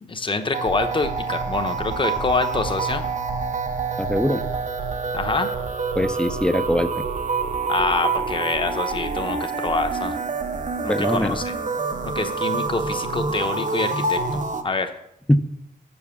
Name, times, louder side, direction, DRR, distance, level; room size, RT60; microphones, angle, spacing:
voice 1, 0.0-3.1 5.1-5.5 7.7-10.2 10.8-11.5 12.0-14.9, left 3 dB, 35° left, 8 dB, 0.9 m, -26 dB
sound 1, 0.5-14.6, right 4 dB, 55° right, 0.8 m, -27 dB
voice 2, 4.0-4.4 6.0-7.0 10.9-11.4 15.3-15.4, left 1 dB, 5° left, 11 dB, 0.5 m, -21 dB
7.3 x 7.2 x 7.0 m, 0.80 s
wide cardioid pair, 130°, 16 cm